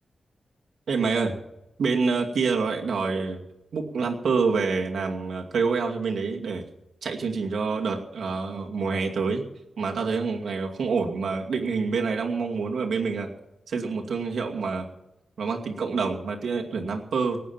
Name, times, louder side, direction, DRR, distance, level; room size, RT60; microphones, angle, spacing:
voice 1, 0.9-1.3 1.8-3.4 3.7-6.6 7.0-9.4 9.8-13.3 13.7-14.9 15.4-17.4, right 4 dB, 85° right, 1 dB, 2.4 m, -27 dB
18.5 x 9.3 x 7.3 m, 0.90 s
wide cardioid pair, 135°, 0 cm